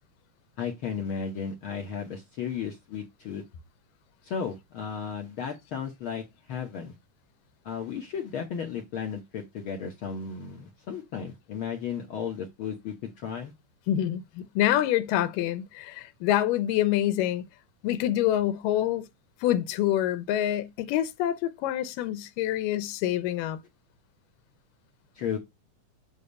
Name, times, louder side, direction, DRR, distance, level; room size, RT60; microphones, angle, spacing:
voice 1, 0.6-3.4 4.2-6.9 7.6-13.5 25.1-25.4, left 7 dB, 70° left, 1.2 m, -34 dB
voice 2, 13.9-17.5 17.8-19.1 19.4-23.6, left 12 dB, 90° left, 2.3 m, -26 dB
8.4 x 2.8 x 5.3 m
omnidirectional pair, 3.8 m